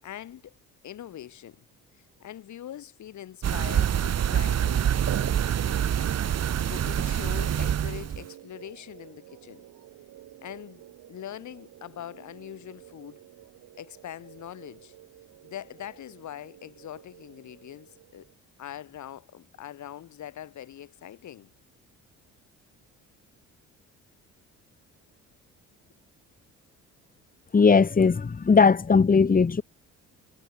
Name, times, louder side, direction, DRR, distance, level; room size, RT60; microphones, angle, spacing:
voice 1, 0.0-0.5 0.8-1.6 1.9-5.6 6.7-9.6 10.4-13.2 13.8-14.9 15.4-18.3 18.6-21.5, left 11 dB, 65° left, 7.6 m, -43 dB
sound 1, 3.4-8.2, right 9 dB, 55° right, 2.7 m, -26 dB
sound 2, 4.9-18.4, right 14 dB, 75° right, 5.9 m, -50 dB
voice 2, 27.5-29.6, left 5 dB, 25° left, 2.2 m, -19 dB
cardioid pair, 90°, 31 cm